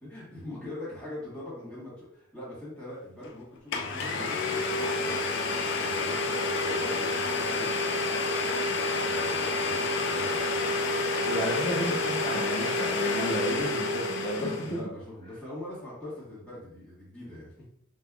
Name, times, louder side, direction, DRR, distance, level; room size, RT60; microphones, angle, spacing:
voice 1, 0.0-5.3 5.8-7.8 9.0-10.7 14.6-17.7, left 1 dB, 5° left, -8 dB, 1.4 m, -43 dB
Domestic sounds home sounds, 3.2-3.3 3.7-14.8, left 3 dB, 60° left, 0.4 m, -29 dB
voice 2, 11.2-14.7, equal, 30° left, -7 dB, 0.7 m, -32 dB
5.3 x 2.0 x 2.3 m, 0.71 s
head